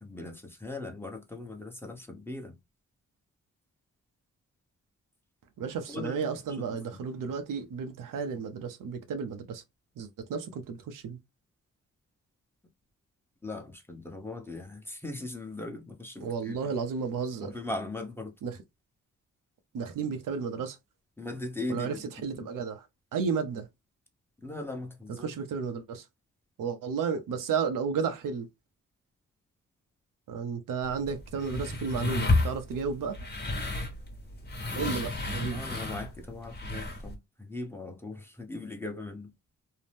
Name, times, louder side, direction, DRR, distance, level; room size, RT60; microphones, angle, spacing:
voice 1, 0.0-2.6 5.9-6.2 6.6-6.7 13.4-16.7 17.4-18.3 21.2-22.0 22.3-22.5 24.4-25.3 34.7-34.9 35.5-39.3, left 2 dB, 5° left, 0.9 m, -39 dB
voice 2, 5.6-9.6 10.0-11.2 16.2-17.6 18.4-18.6 19.7-20.8 21.7-23.7 25.1-26.1 26.6-28.5 30.3-33.3 34.8-35.6, right 6 dB, 85° right, 0.6 m, -33 dB
sound 1, 30.8-37.1, left 2 dB, 30° left, 1.1 m, -32 dB
2.7 x 2.0 x 3.3 m
cardioid pair, 65°, 31 cm